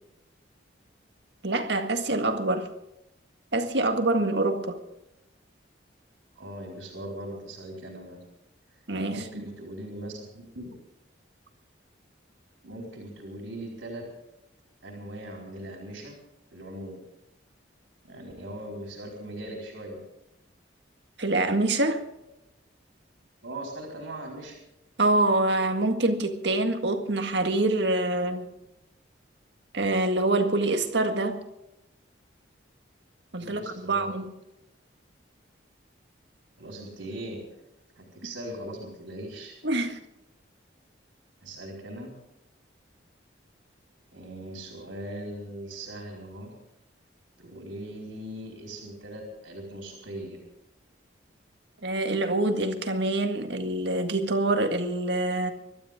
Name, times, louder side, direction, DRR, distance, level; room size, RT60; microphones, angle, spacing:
voice 1, 1.4-2.7 3.5-4.8 8.9-9.4 21.2-22.0 25.0-28.5 29.7-31.4 33.3-34.3 39.6-40.0 51.8-55.5, right 2 dB, 65° right, 1.8 m, -25 dB
voice 2, 6.4-8.2 9.1-10.7 12.6-14.1 14.8-16.2 16.5-17.0 18.0-20.0 23.4-24.6 33.3-34.1 36.6-37.4 38.0-39.5 41.4-42.1 44.1-46.5 47.4-50.4, right 1 dB, 85° right, 4.7 m, -40 dB
25.5 x 13.0 x 3.7 m
head